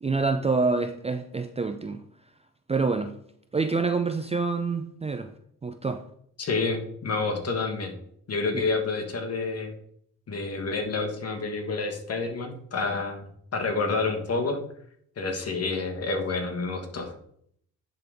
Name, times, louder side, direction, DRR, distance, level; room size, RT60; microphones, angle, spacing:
voice 1, 0.0-2.0 2.7-3.2 3.5-5.3 5.6-6.0 8.5-8.7, right 4 dB, 20° right, 0.4 m, -27 dB
voice 2, 6.4-7.9 8.3-9.7 10.3-13.3 13.5-14.6 15.2-17.1, left 3 dB, 45° left, 1.5 m, -28 dB
10.5 x 3.9 x 3.5 m
cardioid pair, 75°, 35 cm